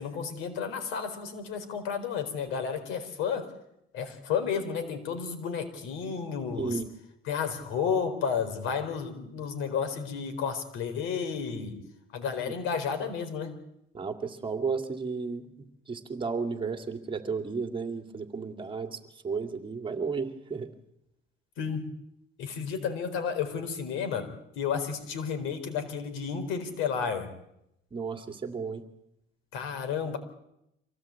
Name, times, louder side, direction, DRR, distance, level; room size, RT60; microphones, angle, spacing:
voice 1, 0.0-3.5 3.9-6.8 7.2-11.8 12.1-13.6 21.6-22.0 22.4-27.3 29.5-30.2, left 6 dB, 80° left, 8 dB, 4.4 m, -32 dB
voice 2, 6.5-6.9 12.5-12.6 13.9-15.5 15.9-19.0 19.2-20.7 27.9-28.8, right 5 dB, 25° right, 5 dB, 2.4 m, -33 dB
25.5 x 17.5 x 8.5 m, 0.81 s
cardioid pair, 130°, 20 cm